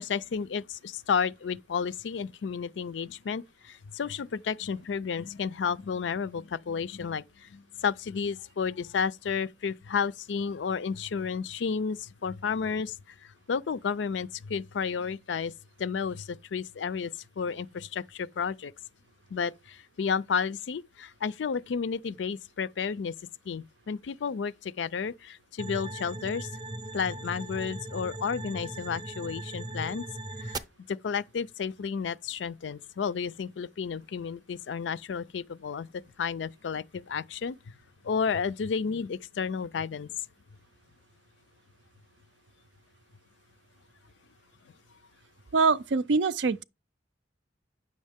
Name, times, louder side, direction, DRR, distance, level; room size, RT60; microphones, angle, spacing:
voice 1, 0.0-13.0 13.2-15.5 15.8-18.7 19.3-23.1 23.5-26.5 26.9-30.1 30.4-30.6 30.9-35.9 36.2-37.6 38.0-40.1, left 6 dB, 85° left, 0.4 m, -32 dB
sound 1, 25.6-30.6, right 2 dB, 20° right, 0.5 m, -38 dB
voice 2, 45.5-46.6, right 4 dB, 80° right, 0.5 m, -24 dB
9.4 x 6.4 x 3.5 m
head